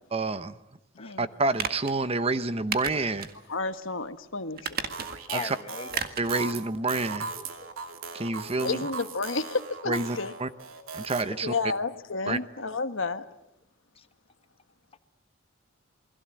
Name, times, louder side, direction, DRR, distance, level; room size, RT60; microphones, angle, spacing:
voice 1, 0.1-0.6 1.2-3.3 5.3-5.6 6.2-7.3 8.1-8.8 9.9-10.5 10.9-11.5 12.3-12.4, right 3 dB, 30° right, 0.9 m, -28 dB
voice 2, 0.9-1.3 3.5-4.8 8.6-10.3 11.4-13.3, left 3 dB, 65° left, 1.4 m, -31 dB
sound 1, 1.5-2.0 2.7-3.4 3.7-3.8 4.6-5.3 5.9-6.3 6.7-6.8, right 6 dB, 50° right, 1.9 m, -33 dB
sound 2, 4.9-11.2, right 5 dB, 85° right, 2.7 m, -38 dB
voice 3, 5.3-6.3 7.3-7.7 11.3-11.4 14.0-14.1, left 4 dB, 30° left, 1.3 m, -40 dB
28.5 x 21.5 x 7.7 m
head